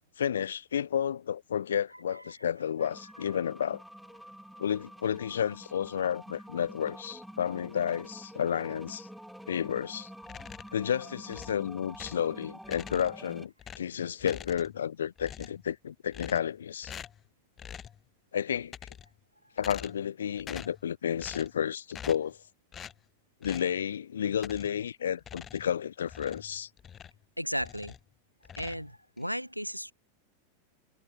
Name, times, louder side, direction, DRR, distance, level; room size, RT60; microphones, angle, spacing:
voice 1, 0.2-3.8 4.6-9.1 9.5-10.1 10.7-16.9 18.3-18.7 19.6-22.4 23.4-26.7, left 9 dB, 65° left, 0.4 m, -31 dB
sound 1, 2.8-13.5, equal, ahead, 2.0 m, -48 dB
sound 2, 10.2-10.8 11.3-12.3 12.6-13.3 13.6-14.9 15.2-15.7 16.1-16.6 16.8-17.3 17.6-18.0 18.6-19.2 19.6-20.1 20.4-20.8 21.2-21.6 21.9-22.3 22.7-23.0 23.4-23.7 24.3-24.8 25.2-27.2 27.6-28.1 28.4-29.3, left 8 dB, 25° left, 3.9 m, -46 dB
voice 2, 27.4-27.9 28.6-29.9, equal, 90° left, 1.4 m, -35 dB
figure-of-eight pair, 90°, 0 cm